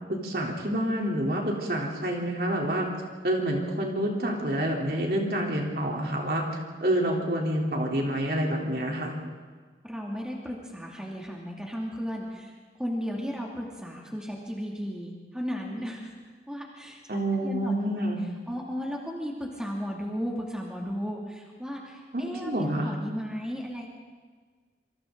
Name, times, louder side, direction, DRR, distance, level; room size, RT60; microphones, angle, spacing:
voice 1, 0.1-2.9 3.2-6.4 6.8-9.1 17.1-18.2 22.1-22.9, right 1 dB, 55° right, -1 dB, 3.6 m, -28 dB
voice 2, 9.8-12.5 12.8-16.1 16.5-17.0 17.4-18.1 18.5-23.9, equal, 5° right, -2 dB, 2.5 m, -34 dB
27.0 x 24.5 x 3.9 m, 1.5 s
head